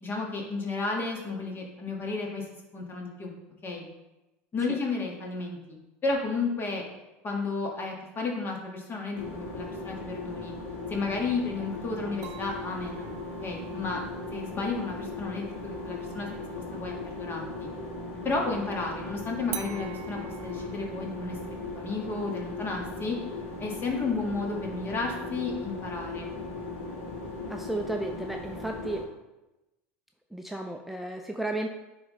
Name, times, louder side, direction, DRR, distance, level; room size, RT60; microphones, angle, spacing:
voice 1, 0.0-2.4 2.7-3.3 3.6-3.8 4.5-5.8 6.0-6.8 7.2-10.5 10.9-13.1 13.4-14.0 14.3-16.4 16.7-17.7 18.2-23.2 23.6-26.3, left 3 dB, 35° left, 0 dB, 1.7 m, -32 dB
sound 1, 9.1-29.0, left 2 dB, 85° left, 1.9 m, -38 dB
sound 2, 12.2-17.8 19.5-24.5, right 11 dB, 55° right, 0.6 m, -48 dB
voice 2, 27.5-29.1 30.3-31.7, right 2 dB, ahead, 3 dB, 0.5 m, -33 dB
9.4 x 3.6 x 3.2 m, 1.0 s
hypercardioid pair, 90°, 7 cm